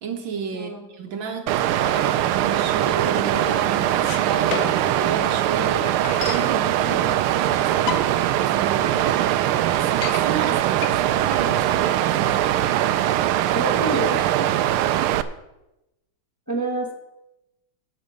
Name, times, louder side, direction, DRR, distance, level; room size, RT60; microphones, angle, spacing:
voice 1, 0.0-5.9 6.2-7.0 7.4-8.1 8.4-12.5 13.6-14.3, right 5 dB, 70° right, 1.7 m, -32 dB
voice 2, 0.5-0.9 6.8-7.1 13.5-14.5 16.5-16.9, right 2 dB, 10° left, 1.4 m, -28 dB
Water, 1.5-15.2, right 12 dB, 85° right, 1.5 m, -21 dB
sound 1, 4.0-5.0 5.3-5.4 5.6-6.5 7.3-7.4 7.7-8.4 8.8-8.9 9.2-9.3 9.7-10.2 10.8-13.7, left 9 dB, 85° left, 0.7 m, -32 dB
9.5 x 8.5 x 6.5 m
omnidirectional pair, 2.3 m